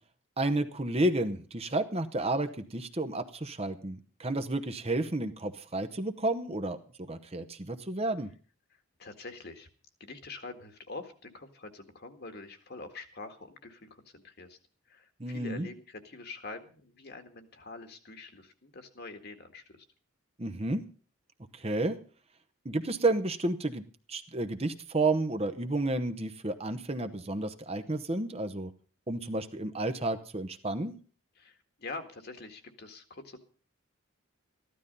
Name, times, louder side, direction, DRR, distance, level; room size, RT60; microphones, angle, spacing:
voice 1, 0.4-8.3 15.2-15.7 20.4-20.8 21.5-22.0 22.6-23.8 24.1-28.7 29.1-30.9, right 2 dB, 30° right, 8 dB, 0.9 m, -31 dB
voice 2, 8.7-9.7 10.0-14.6 14.9-19.9 31.4-33.4, left 3 dB, 45° left, 6 dB, 1.9 m, -45 dB
14.5 x 12.5 x 5.4 m, 0.39 s
head